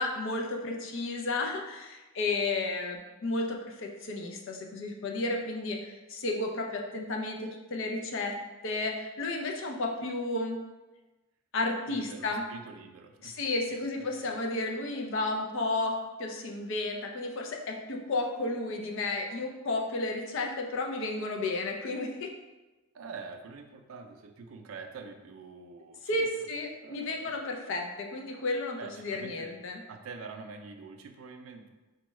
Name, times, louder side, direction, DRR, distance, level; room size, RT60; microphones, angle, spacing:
voice 1, 0.0-8.4 8.6-10.6 11.5-12.4 13.2-22.3 26.0-29.8, left 2 dB, 60° left, 2 dB, 0.5 m, -32 dB
voice 2, 11.9-13.3 13.7-14.3 22.9-26.3 26.8-27.4 28.8-29.6 29.9-31.6, right 4 dB, 70° right, 5 dB, 0.4 m, -46 dB
4.4 x 2.3 x 3.0 m, 1.1 s
head